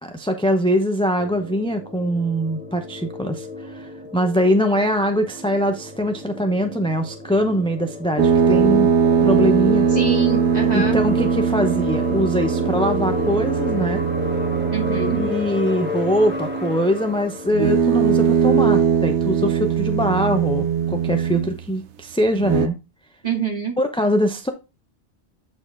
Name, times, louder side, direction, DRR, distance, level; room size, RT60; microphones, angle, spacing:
voice 1, 0.0-8.9 9.2-9.8 10.7-14.1 15.2-22.8 23.8-24.5, equal, 5° left, 6 dB, 0.6 m, -22 dB
sound 1, 1.2-17.7, left 2 dB, 10° right, 1.7 m, -31 dB
sound 2, 8.2-15.5 17.5-21.7 22.3-22.7, right 7 dB, 85° right, 1.0 m, -20 dB
voice 2, 9.9-11.0 14.7-15.2 23.2-23.7, right 6 dB, 35° right, 0 dB, 2.5 m, -26 dB
8.5 x 4.8 x 3.6 m, 0.27 s
omnidirectional pair, 1.1 m